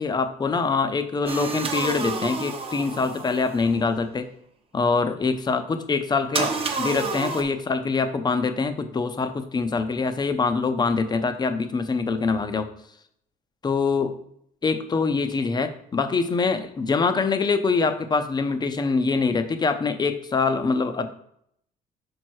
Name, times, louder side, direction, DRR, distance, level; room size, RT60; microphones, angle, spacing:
voice 1, 0.0-4.3 4.7-6.5 6.8-12.7 13.6-14.2 14.6-21.1, left 4 dB, 25° left, 9 dB, 0.6 m, -24 dB
sound 1, 1.3-3.7 6.3-7.4, right 4 dB, 35° right, 0.9 m, -29 dB
5.3 x 4.7 x 4.5 m, 0.71 s
cardioid pair, 110°, 17 cm